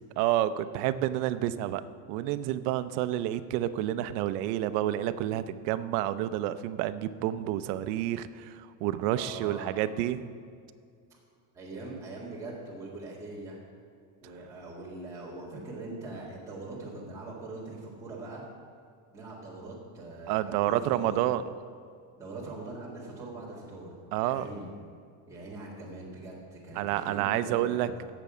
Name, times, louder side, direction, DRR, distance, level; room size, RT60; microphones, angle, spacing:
voice 1, 0.2-1.8 2.1-10.3 20.3-21.4 24.1-24.5 26.7-27.9, right 13 dB, 65° right, 12 dB, 0.6 m, -29 dB
voice 2, 9.1-9.7 11.5-13.6 14.2-18.4 19.1-21.2 22.2-23.9 24.2-24.7 25.3-28.1, right 2 dB, 5° right, -8 dB, 1.9 m, -42 dB
16.5 x 6.9 x 4.9 m, 2.3 s
cardioid pair, 175°, 49 cm